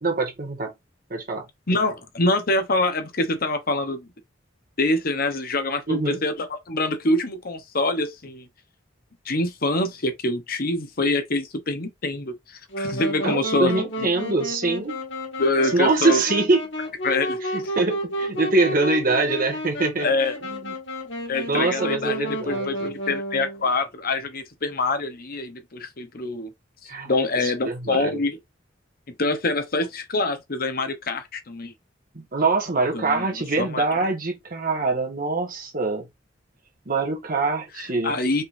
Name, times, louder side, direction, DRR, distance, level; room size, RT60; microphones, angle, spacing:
voice 1, 0.0-0.7 1.1-1.5 5.9-6.2 13.2-14.9 15.7-16.6 17.4-20.1 20.4-20.7 21.5-22.9 26.9-27.1 27.4-28.2 32.1-36.1 36.8-38.2, right 3 dB, 50° right, 1.6 m, -24 dB
voice 2, 1.7-4.1 4.8-8.5 9.3-12.3 12.8-13.7 15.4-16.2 17.0-17.4 20.0-20.3 21.3-26.5 26.8-28.4 29.2-31.7 32.9-33.3 33.6-33.8 38.0-38.4, left 2 dB, 50° left, 1.0 m, -25 dB
Wind instrument woodwind instrument, 12.7-23.6, equal, 75° left, 2.1 m, -31 dB
5.3 x 3.7 x 2.6 m
head